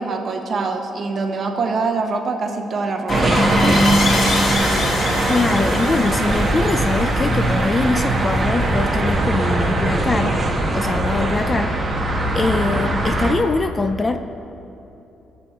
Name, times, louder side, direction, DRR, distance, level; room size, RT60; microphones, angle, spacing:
voice 1, 0.0-3.3, right 4 dB, 40° right, 4 dB, 1.0 m, -24 dB
sound 1, 3.1-8.4, left 3 dB, 40° left, 1.0 m, -26 dB
sound 2, 3.1-13.3, right 1 dB, 20° right, 1.1 m, -20 dB
voice 2, 5.3-10.4 10.7-11.8 12.3-14.2, left 3 dB, 20° left, 8 dB, 0.3 m, -22 dB
18.5 x 7.0 x 3.5 m, 3.0 s
cardioid pair, 150°, 0 cm